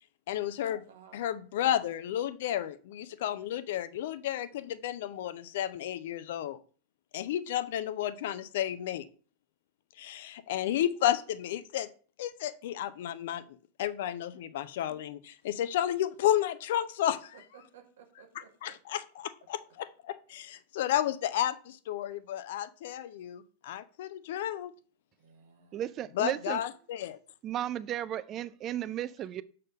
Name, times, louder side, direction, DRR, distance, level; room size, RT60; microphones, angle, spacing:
voice 1, 0.3-0.8 1.1-6.6 7.1-9.1 10.0-11.9 12.2-13.4 13.8-17.4 18.3-24.7 26.1-27.2, left 11 dB, 55° left, 0.5 m, -32 dB
voice 2, 0.9-1.2 17.5-18.7 25.2-25.8, right 8 dB, 60° right, 1.5 m, -56 dB
voice 3, 25.7-26.6 27.4-29.4, right 11 dB, 30° right, 0.4 m, -34 dB
6.4 x 4.1 x 5.2 m
figure-of-eight pair, 90°, 0 cm